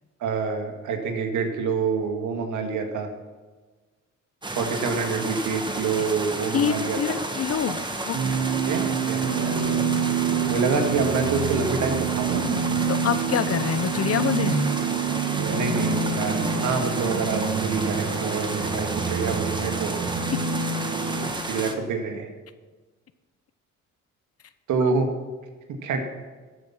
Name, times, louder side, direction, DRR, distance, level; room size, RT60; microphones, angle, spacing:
voice 1, 0.2-3.1 4.6-7.2 8.6-9.6 10.5-12.6 15.5-19.9 21.4-22.3 24.7-25.1 25.8-26.0, right 4 dB, 75° right, 4 dB, 1.9 m, -27 dB
sound 1, 4.4-21.7, right 2 dB, 15° right, 1.5 m, -32 dB
voice 2, 6.5-7.8 8.1-8.4 12.9-14.7 24.8-24.9, left 8 dB, 50° left, 12 dB, 0.9 m, -26 dB
sound 2, 8.1-21.3, right 6 dB, 55° right, 1.3 m, -27 dB
13.5 x 8.2 x 5.9 m, 1.3 s
cardioid pair, 90°, 30 cm